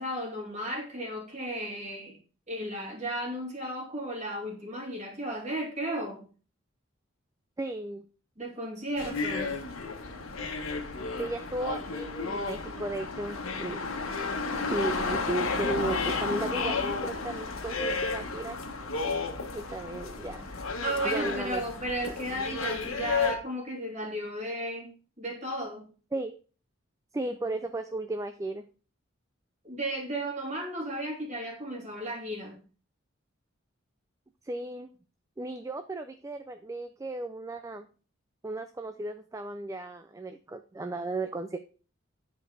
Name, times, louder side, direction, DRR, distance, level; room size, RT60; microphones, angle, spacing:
voice 1, 0.0-2.2 2.5-6.2 8.4-9.5 20.8-24.9 25.2-25.9 29.6-32.5, right 1 dB, 35° right, -1 dB, 2.5 m, -34 dB
voice 2, 7.6-8.0 11.1-13.8 14.7-18.6 19.5-20.5 21.0-21.6 26.1-26.4 27.1-28.7 34.4-34.9 35.4-37.9 38.4-41.6, right 2 dB, 15° right, 8 dB, 0.3 m, -35 dB
sound 1, 9.0-23.3, left 4 dB, 80° left, 1.3 m, -32 dB
8.9 x 4.6 x 4.7 m, 0.38 s
head